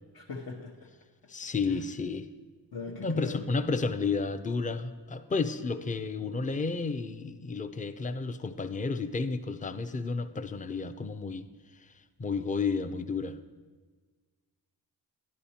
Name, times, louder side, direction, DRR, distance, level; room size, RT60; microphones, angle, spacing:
voice 1, 0.1-0.9 1.6-1.8 2.7-3.4, left 4 dB, 60° left, -2 dB, 0.9 m, -40 dB
voice 2, 1.3-2.3 2.9-11.5 12.2-13.4, left 4 dB, 20° left, 9 dB, 0.5 m, -32 dB
11.0 x 8.6 x 2.8 m, 1.4 s
cardioid pair, 50°, 43 cm